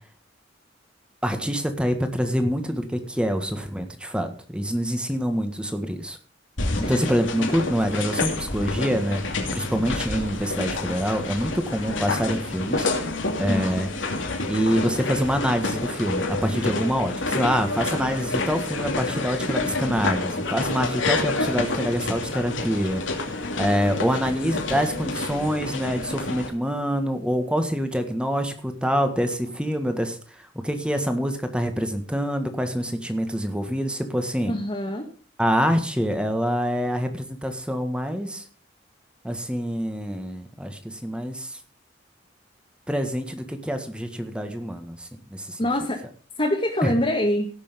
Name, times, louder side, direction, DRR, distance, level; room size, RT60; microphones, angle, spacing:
voice 1, 1.2-6.2 6.8-9.2 9.5-12.9 13.4-13.9 14.5-30.2 30.6-34.5 35.4-38.4 39.2-41.6 42.9-45.6 46.8-46.9, equal, 5° right, 7 dB, 1.7 m, -26 dB
sound 1, 6.6-26.5, left 2 dB, 85° left, 2.6 m, -28 dB
voice 2, 13.5-13.8 34.5-35.1 45.6-46.0 46.4-47.5, left 1 dB, 30° left, 0 dB, 1.8 m, -25 dB
17.0 x 6.9 x 5.2 m, 0.42 s
head